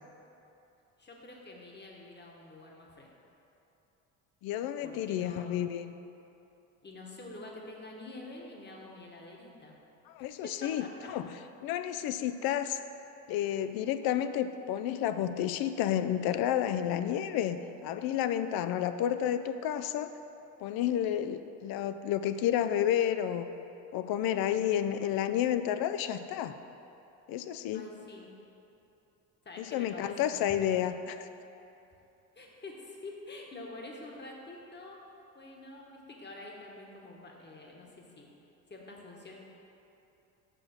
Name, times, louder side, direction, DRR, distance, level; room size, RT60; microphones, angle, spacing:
voice 1, 1.0-3.1 4.8-5.5 6.8-9.8 10.2-11.1 27.7-28.3 29.4-30.4 32.3-35.0 35.3-38.3 38.7-39.4, left 2 dB, 25° left, -1 dB, 1.3 m, -47 dB
voice 2, 4.4-5.9 10.1-12.8 13.3-20.1 20.6-23.5 23.9-26.6 27.3-27.9 29.6-31.3, left 10 dB, 60° left, 11 dB, 0.5 m, -31 dB
5.6 x 5.1 x 5.1 m, 2.9 s
hypercardioid pair, 65°, 41 cm